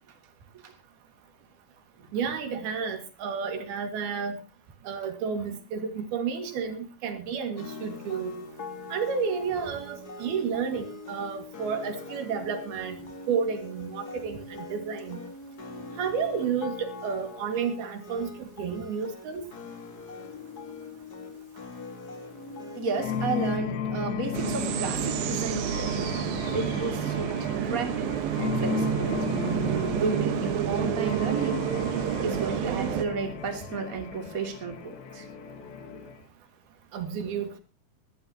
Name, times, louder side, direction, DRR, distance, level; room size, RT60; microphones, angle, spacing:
voice 1, 2.1-4.4 4.9-8.3 8.9-13.0 13.3-15.2 16.0-19.4 36.9-37.6, right 6 dB, 90° right, 6 dB, 4.1 m, -31 dB
sound 1, 7.6-23.6, left 2 dB, 35° left, 1.6 m, -42 dB
voice 2, 22.7-26.2 26.5-29.4 30.0-31.7 32.2-35.3, right 4 dB, 25° right, 4 dB, 2.6 m, -33 dB
sound 2, 23.0-36.2, left 6 dB, 85° left, 3.5 m, -35 dB
sound 3, 24.3-33.1, right 10 dB, 75° right, 3.0 m, -29 dB
22.5 x 13.0 x 2.9 m, 0.31 s
omnidirectional pair, 4.3 m